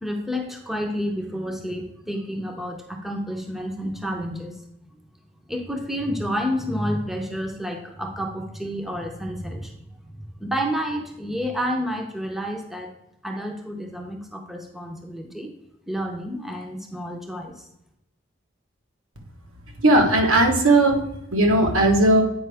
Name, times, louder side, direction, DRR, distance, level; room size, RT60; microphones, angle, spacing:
voice 1, 0.0-4.6 5.5-9.8 10.4-12.9 13.2-15.5 15.9-17.6, equal, ahead, 2 dB, 0.7 m, -29 dB
voice 2, 19.8-21.0 21.3-22.2, right 1 dB, 85° right, 2 dB, 1.3 m, -17 dB
8.6 x 5.2 x 3.5 m, 0.84 s
head